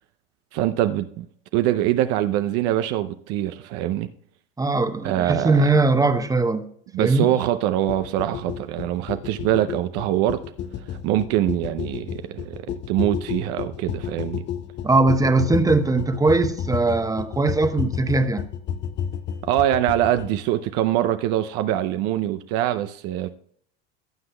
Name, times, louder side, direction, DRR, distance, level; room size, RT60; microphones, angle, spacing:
voice 1, 0.5-1.2 1.5-4.1 5.0-5.6 6.9-10.4 11.0-14.4 19.4-23.3, right 13 dB, 60° right, 0.6 m, -23 dB
voice 2, 4.6-6.6 7.0-7.3 14.8-18.5, right 3 dB, 10° right, 1.0 m, -20 dB
sound 1, 7.9-20.4, left 8 dB, 35° left, 0.8 m, -31 dB
17.5 x 7.7 x 2.2 m
hypercardioid pair, 90°, 30 cm